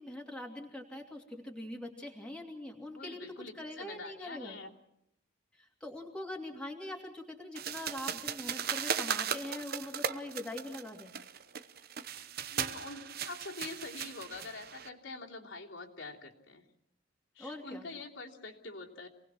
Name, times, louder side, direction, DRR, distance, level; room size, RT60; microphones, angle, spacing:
voice 1, 0.0-3.3 3.6-4.6 5.5-11.1 17.4-17.9, left 1 dB, 5° left, 0 dB, 2.7 m, -43 dB
voice 2, 2.9-4.7 12.5-16.6 17.3-19.1, left 3 dB, 65° left, -2 dB, 3.1 m, -45 dB
sound 1, 7.6-14.9, right 7 dB, 45° right, 1.0 m, -37 dB
28.0 x 19.5 x 6.2 m, 0.80 s
head